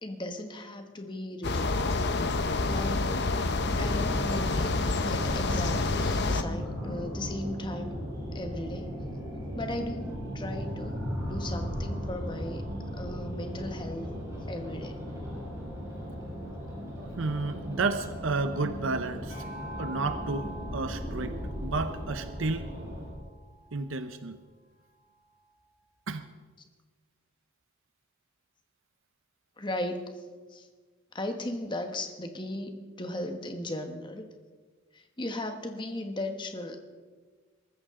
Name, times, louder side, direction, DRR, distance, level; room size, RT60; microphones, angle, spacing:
voice 1, 0.0-1.7 2.6-3.3 3.8-4.8 5.1-8.0 8.3-9.1 9.5-12.7 12.9-15.1 29.6-30.2 30.5-30.7 31.1-34.2 34.9-36.8, left 1 dB, 20° left, 5 dB, 1.3 m, -37 dB
sound 1, 1.4-6.4, left 3 dB, 55° left, 0.8 m, -28 dB
sound 2, 3.6-23.1, equal, 15° right, 5.4 m, -37 dB
voice 2, 17.2-19.4 19.8-22.7 23.7-24.4 26.1-26.2, right 3 dB, 70° right, 9 dB, 0.7 m, -31 dB
sound 3, 19.3-23.9, right 1 dB, 70° left, 3.2 m, -46 dB
22.5 x 14.5 x 3.8 m, 1.4 s
head